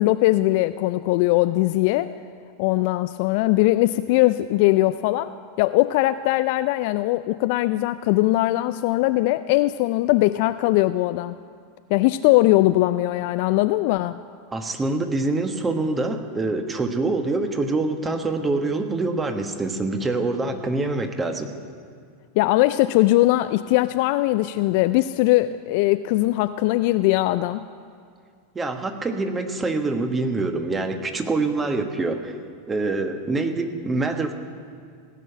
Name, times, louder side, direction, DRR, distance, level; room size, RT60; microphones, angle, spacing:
voice 1, 0.0-2.1 2.6-5.3 5.6-11.4 11.9-14.2 22.4-27.6, left 17 dB, 55° left, 12 dB, 0.3 m, -20 dB
voice 2, 14.5-21.5 28.5-32.4 32.7-34.3, right 3 dB, 20° right, 6 dB, 1.3 m, -25 dB
17.0 x 6.6 x 8.7 m, 2.2 s
figure-of-eight pair, 90°, 0 cm